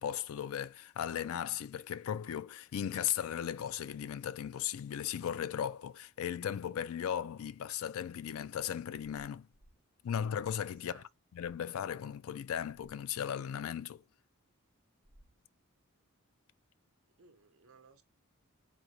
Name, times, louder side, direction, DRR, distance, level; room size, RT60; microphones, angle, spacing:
voice 1, 0.0-9.5 10.0-11.0 11.3-14.0, left 9 dB, 70° left, 0.3 m, -37 dB
sound 1, 9.5-9.8 10.4-10.8 11.3-11.6 12.7-13.0 15.0-15.4, equal, 20° left, 0.8 m, -62 dB
voice 2, 10.6-11.1 17.2-18.0, right 4 dB, 70° right, 0.7 m, -59 dB
3.7 x 2.8 x 3.1 m
head